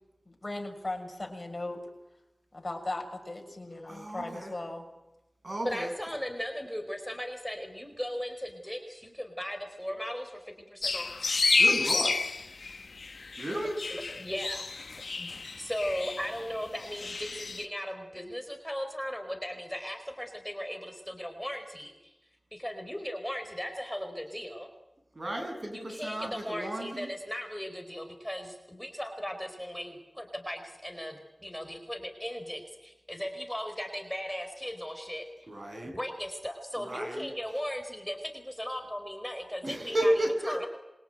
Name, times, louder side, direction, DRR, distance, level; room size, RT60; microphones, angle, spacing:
voice 1, 0.3-1.8 2.5-4.8, left 2 dB, 40° left, 4 dB, 6.2 m, -37 dB
voice 2, 3.9-4.5 5.4-5.9 11.6-12.1 13.4-13.8 25.2-27.1 35.5-35.9 36.8-37.3 39.6-40.7, right 1 dB, 50° right, 4 dB, 7.7 m, -32 dB
voice 3, 5.6-11.1 13.9-14.7 15.2-15.3 15.5-22.1 22.5-24.7 25.6-35.5 35.8-40.7, equal, 5° left, 5 dB, 4.5 m, -37 dB
sound 1, 10.8-17.6, left 3 dB, 85° left, 1.1 m, -30 dB
27.0 x 23.5 x 9.2 m, 0.99 s
wide cardioid pair, 65°, 0 cm